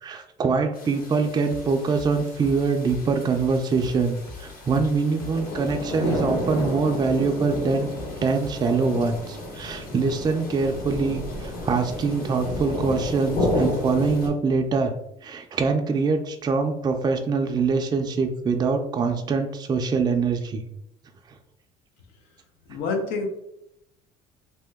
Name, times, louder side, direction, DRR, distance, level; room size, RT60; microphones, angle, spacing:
voice 1, 0.0-7.9 8.2-14.9 15.2-20.6, right 4 dB, 25° right, 4 dB, 0.3 m, -24 dB
sound 1, 0.7-14.3, left 1 dB, 60° left, 1.1 m, -32 dB
sound 2, 1.5-8.7, left 3 dB, 15° left, 0.7 m, -42 dB
voice 2, 22.7-23.3, left 3 dB, 80° left, 3 dB, 0.7 m, -27 dB
2.8 x 2.1 x 3.4 m, 0.81 s
cardioid pair, 100°, 17 cm